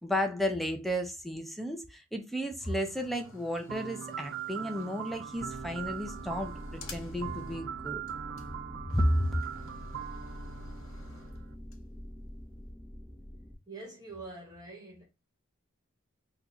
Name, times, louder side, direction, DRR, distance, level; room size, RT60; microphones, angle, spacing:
voice 1, 0.0-8.0 8.9-9.4, equal, ahead, 0.4 m, -32 dB
sound 1, 2.6-7.8 8.1-8.2 8.4-8.5 8.9-11.7, left 4 dB, 75° left, 0.7 m, -52 dB
sound 2, 3.7-11.5, right 8 dB, 60° right, 0.4 m, -41 dB
sound 3, 5.3-13.5, equal, 25° left, 1.0 m, -45 dB
voice 2, 13.7-15.0, right 3 dB, 20° right, 1.2 m, -45 dB
3.8 x 2.4 x 2.8 m
head